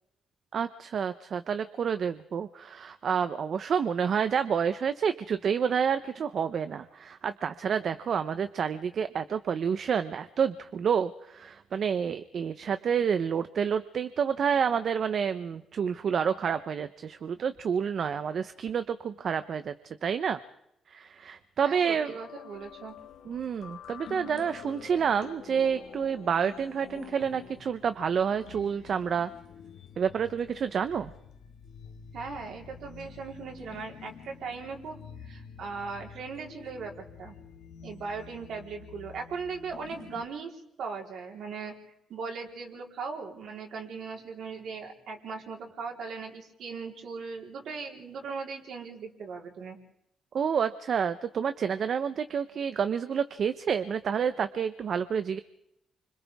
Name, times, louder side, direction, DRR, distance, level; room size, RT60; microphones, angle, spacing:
voice 1, 0.5-19.7 20.0-20.4 20.9-22.1 23.3-29.3 30.0-31.1 50.3-55.4, right 7 dB, 55° right, 11 dB, 0.8 m, -29 dB
voice 2, 21.6-23.0 32.1-37.3 37.8-41.7 42.1-49.8, right 5 dB, 70° right, 1 dB, 4.0 m, -39 dB
sound 1, 21.7-40.3, left 7 dB, 75° left, 1.9 m, -48 dB
29.5 x 25.5 x 3.6 m, 0.81 s
cardioid pair, 105°, 0 cm